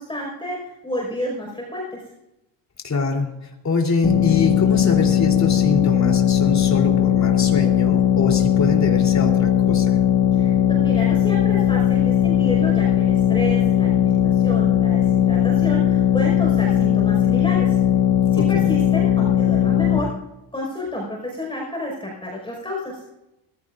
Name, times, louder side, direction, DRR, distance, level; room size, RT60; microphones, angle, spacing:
voice 1, 0.0-2.0 10.3-17.8 18.3-20.2 20.5-23.0, left 1 dB, 10° left, -2 dB, 5.3 m, -30 dB
voice 2, 2.8-10.0 18.4-18.7, left 4 dB, 35° left, 2 dB, 3.6 m, -24 dB
sound 1, 4.0-20.0, left 10 dB, 50° left, 1.6 m, -18 dB
21.0 x 15.5 x 2.6 m, 0.93 s
cardioid pair, 100°, 46 cm